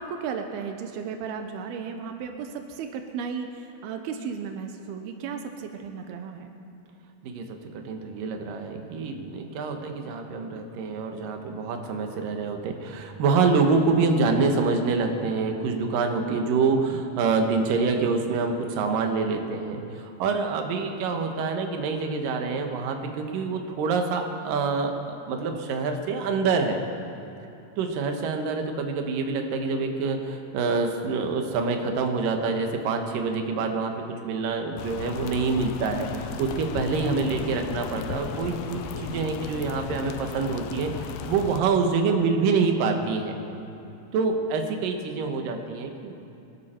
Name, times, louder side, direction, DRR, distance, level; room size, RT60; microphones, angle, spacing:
voice 1, 0.0-6.5, right 6 dB, 90° right, 6 dB, 2.8 m, -34 dB
voice 2, 7.2-26.8 27.8-43.4 44.1-46.1, right 4 dB, 70° right, 4 dB, 2.8 m, -26 dB
sound 1, 34.8-41.6, left 7 dB, 75° left, 1.9 m, -35 dB
25.0 x 12.0 x 4.4 m, 2.9 s
omnidirectional pair, 4.4 m